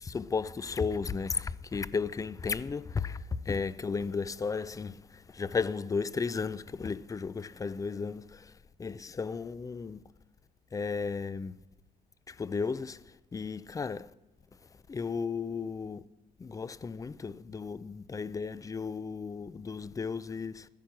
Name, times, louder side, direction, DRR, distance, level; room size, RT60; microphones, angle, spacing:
voice 1, 0.0-8.5 8.8-10.0 10.7-11.6 12.3-14.1 14.9-16.1 16.4-20.7, left 5 dB, 20° left, 0.4 m, -34 dB
13.0 x 10.5 x 6.0 m
cardioid pair, 110°, 17 cm